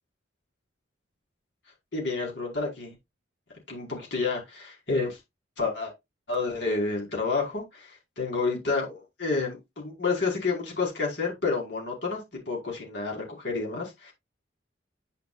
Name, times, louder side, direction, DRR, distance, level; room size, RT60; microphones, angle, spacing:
voice 1, 1.9-2.9 3.7-5.2 5.6-5.9 6.3-14.1, left 4 dB, 60° left, 4.6 m, -30 dB
10.0 x 6.6 x 2.4 m
head